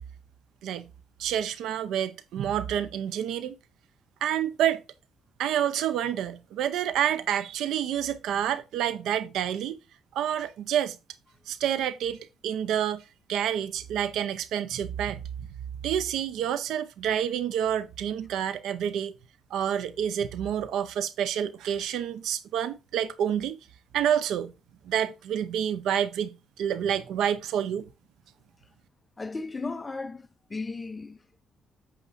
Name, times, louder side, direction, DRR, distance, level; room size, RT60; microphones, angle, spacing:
voice 1, 1.2-3.6 4.2-4.8 5.4-9.8 10.1-11.0 11.5-13.0 13.3-15.2 15.8-19.1 19.5-23.6 23.9-24.5 24.8-27.8, right 9 dB, 80° right, 0.6 m, -28 dB
voice 2, 29.2-31.4, left 3 dB, 20° left, 0.7 m, -36 dB
8.3 x 7.3 x 2.6 m
cardioid pair, 90°, 0 cm